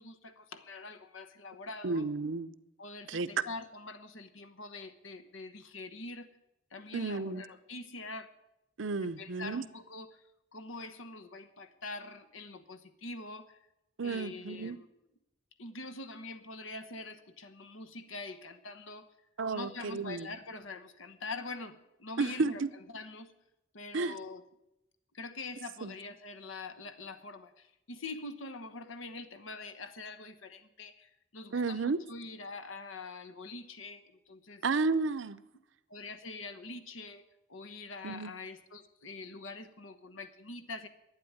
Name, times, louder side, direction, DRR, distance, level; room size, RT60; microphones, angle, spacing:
voice 1, 0.0-2.1 2.8-6.3 6.7-8.3 9.0-10.2 10.5-13.6 14.0-14.9 15.6-19.1 19.5-23.3 23.7-24.4 25.1-34.6 35.9-37.2 37.5-40.9, left 3 dB, 80° left, 9 dB, 1.1 m, -44 dB
voice 2, 1.8-2.5 3.1-3.3 6.9-7.4 8.8-9.6 14.0-14.8 19.4-20.3 22.2-22.7 23.9-24.2 25.8-25.9 31.5-32.0 34.6-35.4 38.0-38.3, right 3 dB, 75° right, 14 dB, 0.7 m, -32 dB
11.5 x 9.5 x 9.6 m, 0.88 s
head